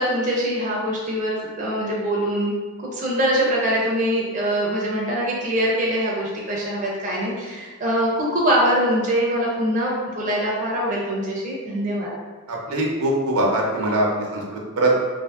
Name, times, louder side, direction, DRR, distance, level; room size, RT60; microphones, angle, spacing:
voice 1, 0.0-2.5 2.8-12.1, equal, 35° right, -4 dB, 0.4 m, -23 dB
voice 2, 12.5-15.0, right 1 dB, 85° right, -2 dB, 0.6 m, -22 dB
2.5 x 2.5 x 2.4 m, 1.3 s
head